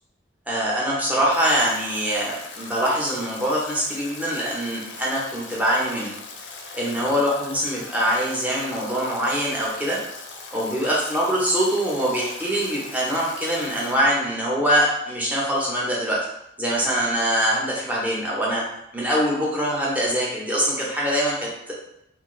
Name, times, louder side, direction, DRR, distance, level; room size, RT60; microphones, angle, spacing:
voice 1, 0.5-6.2 6.7-10.0 10.5-16.2 16.6-18.6 18.9-21.7, equal, 10° right, -5 dB, 0.6 m, -23 dB
Stream / Drip / Trickle dribble, 1.3-14.0, left 4 dB, 70° left, 0.5 m, -40 dB
2.9 x 2.4 x 3.0 m, 0.80 s
head